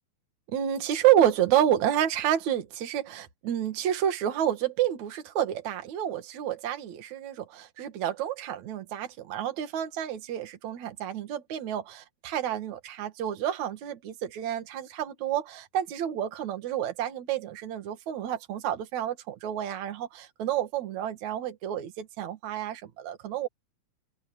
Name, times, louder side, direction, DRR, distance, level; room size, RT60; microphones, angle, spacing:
voice 1, 0.5-23.5, right 11 dB, 60° right, 3.1 m, -29 dB
open air
omnidirectional pair, 4.0 m